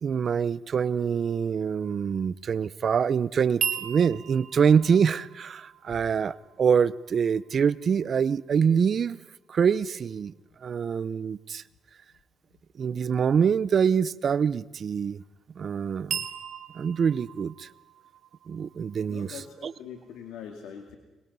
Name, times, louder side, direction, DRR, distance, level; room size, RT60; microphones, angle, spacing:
voice 1, 0.0-9.2 9.5-10.3 10.6-11.6 12.8-15.2 15.6-16.3 16.7-17.7 18.5-19.7, right 7 dB, 50° right, 18 dB, 0.7 m, -25 dB
sound 1, 3.6-7.7 16.1-19.9, right 9 dB, 65° right, 1.4 m, -37 dB
voice 2, 19.1-21.0, left 7 dB, 85° left, 3 dB, 2.2 m, -42 dB
22.5 x 21.0 x 5.5 m, 1.0 s
cardioid pair, 90°, 0 cm